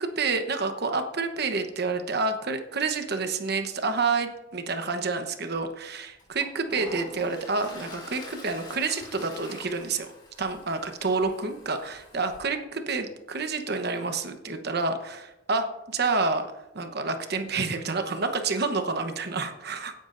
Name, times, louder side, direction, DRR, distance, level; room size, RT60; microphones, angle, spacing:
voice 1, 0.0-10.1 10.4-16.5 16.7-19.9, right 4 dB, 55° right, 7 dB, 1.1 m, -29 dB
Toilet flush, 5.6-5.7 6.2-12.4, left 2 dB, 25° left, 3.3 m, -46 dB
17.0 x 9.6 x 2.6 m, 0.91 s
head